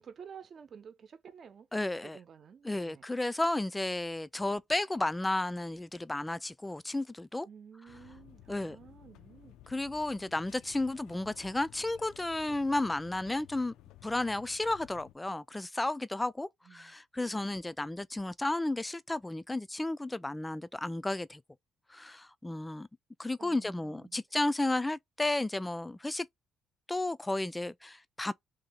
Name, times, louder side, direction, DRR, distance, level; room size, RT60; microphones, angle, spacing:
voice 1, 0.0-1.7 2.0-3.0 7.4-9.6 16.6-17.3 23.4-24.2, right 7 dB, 50° right, 0.9 m, -52 dB
voice 2, 1.7-2.2 2.6-7.5 8.5-8.8 9.7-13.7 14.0-21.4 21.9-22.9 23.2-26.3 26.9-28.3, left 2 dB, 15° left, 0.4 m, -33 dB
sound 1, 7.9-15.1, left 13 dB, 90° left, 0.4 m, -56 dB
2.8 x 2.7 x 3.8 m
cardioid pair, 90°, 0 cm